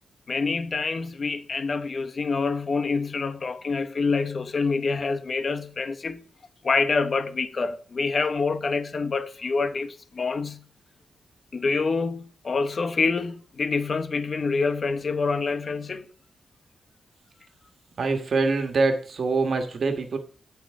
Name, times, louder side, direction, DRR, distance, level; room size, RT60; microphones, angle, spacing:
voice 1, 0.3-6.2 6.6-10.6 11.5-16.1, left 4 dB, 45° left, 0.9 m, -26 dB
voice 2, 18.0-20.2, right 3 dB, 60° right, 1.6 m, -24 dB
17.0 x 5.7 x 3.7 m
wide cardioid pair, 105°, 0 cm